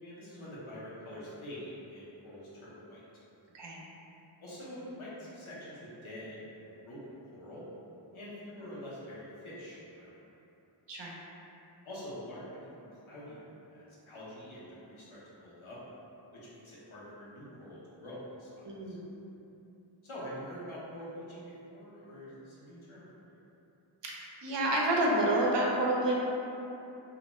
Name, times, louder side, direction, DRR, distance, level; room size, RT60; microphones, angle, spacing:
voice 1, 0.0-3.0 4.4-7.6 8.1-10.1 11.8-15.8 16.3-18.9 20.0-23.3, equal, 85° left, -8 dB, 0.7 m, -46 dB
voice 2, 18.7-19.0 24.0-26.2, right 1 dB, 60° right, -3 dB, 0.5 m, -29 dB
2.5 x 2.1 x 3.0 m, 2.9 s
wide cardioid pair, 45°, 48 cm